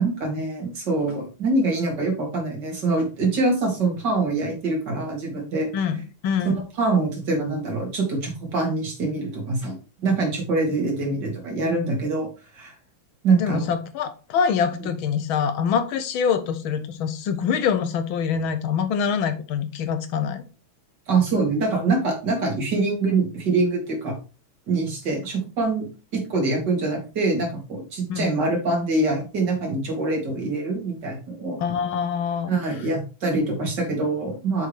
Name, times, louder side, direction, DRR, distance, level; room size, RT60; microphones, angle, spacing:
voice 1, 0.0-5.7 6.8-9.7 10.0-12.3 12.5-12.7 13.2-13.7 21.1-24.2 24.7-25.9 26.1-31.6 32.5-34.7, right 3 dB, 60° right, 1 dB, 2.6 m, -24 dB
voice 2, 5.7-6.6 13.3-20.4 28.1-28.3 31.6-32.6, left 7 dB, 85° left, 10 dB, 1.6 m, -25 dB
6.8 x 4.6 x 3.4 m, 0.32 s
omnidirectional pair, 2.2 m